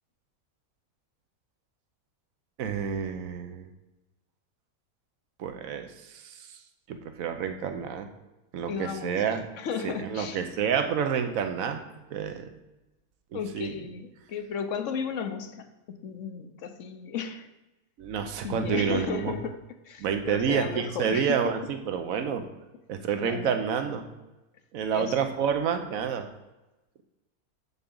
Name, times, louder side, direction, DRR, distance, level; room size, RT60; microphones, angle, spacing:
voice 1, 2.6-3.7 5.4-6.4 6.9-8.1 8.5-9.5 9.8-11.8 12.1-12.5 13.3-13.7 18.0-19.4 20.0-22.4 22.9-24.1 24.7-26.3, right 7 dB, 70° right, 7 dB, 1.2 m, -29 dB
voice 2, 8.7-9.2 9.6-10.5 13.3-15.7 16.0-17.5 18.4-19.5 19.8-21.6 23.2-23.6 24.9-25.2, left 6 dB, 60° left, 8 dB, 1.0 m, -34 dB
7.9 x 7.1 x 3.8 m, 1.0 s
omnidirectional pair, 1.6 m